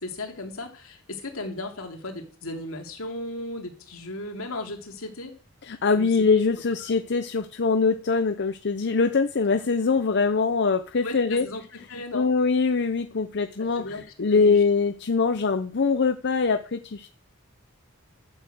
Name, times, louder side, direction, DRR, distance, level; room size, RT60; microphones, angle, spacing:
voice 1, 0.0-5.3 6.0-6.3 6.8-7.0 11.0-12.3 13.8-14.0 14.3-14.6, left 2 dB, 75° left, 2 dB, 3.0 m, -36 dB
voice 2, 5.6-11.4 12.1-17.1, left 4 dB, 55° left, 9 dB, 0.7 m, -23 dB
11.5 x 6.7 x 7.9 m, 0.40 s
head